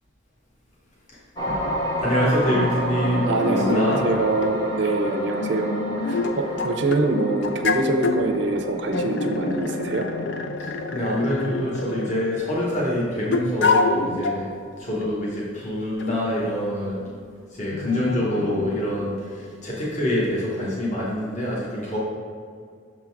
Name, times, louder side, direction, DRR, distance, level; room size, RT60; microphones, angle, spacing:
sound 1, 1.4-13.7 14.2-14.4, equal, 20° left, 0.7 m, -31 dB
sound 2, 1.6-1.7 2.5-4.1 4.4-4.5 5.4-7.0 7.4-8.2 8.9-12.4 13.3-14.4 15.0-15.1 16.0-16.2 17.7-18.7, left 3 dB, 60° left, 0.4 m, -27 dB
voice 1, 2.0-4.1 6.1-6.2 10.6-17.0 17.5-22.0, left 1 dB, 35° left, -6 dB, 1.0 m, -25 dB
voice 2, 3.3-10.1, right 2 dB, 60° right, 4 dB, 0.6 m, -24 dB
6.3 x 3.7 x 4.5 m, 2.2 s
head